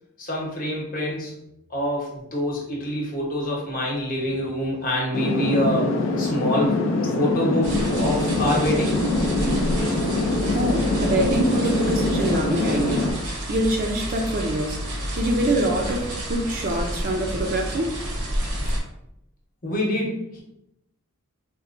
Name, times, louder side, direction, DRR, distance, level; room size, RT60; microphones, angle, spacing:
voice 1, 0.2-1.3 1.7-6.8 7.1-9.0 19.6-20.4, left 1 dB, 40° left, 0.9 m, -26 dB
sound 1, 5.1-13.1, left 2 dB, 60° left, 0.4 m, -24 dB
sound 2, 7.6-18.8, equal, 85° right, 0.8 m, -30 dB
voice 2, 10.5-13.1 13.5-18.0 18.6-18.7, right 1 dB, 40° right, 0.4 m, -25 dB
4.1 x 2.1 x 2.5 m
head